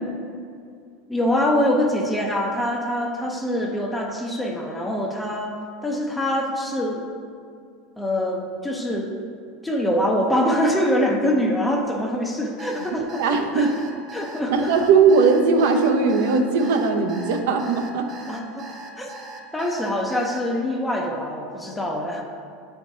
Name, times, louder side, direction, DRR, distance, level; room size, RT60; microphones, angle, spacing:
voice 1, 1.1-7.1 8.0-9.1 9.6-13.2 13.5-13.7 14.1-14.7 18.3-18.7 19.0-19.1 19.5-22.2, left 1 dB, 10° left, 0 dB, 0.6 m, -24 dB
Alarm, 12.6-20.4, right 3 dB, 35° right, 1.0 m, -40 dB
voice 2, 13.2-13.7 14.5-18.1, right 4 dB, 80° right, 4 dB, 0.7 m, -19 dB
8.7 x 4.5 x 2.7 m, 2.3 s
supercardioid pair, 135°, 0 cm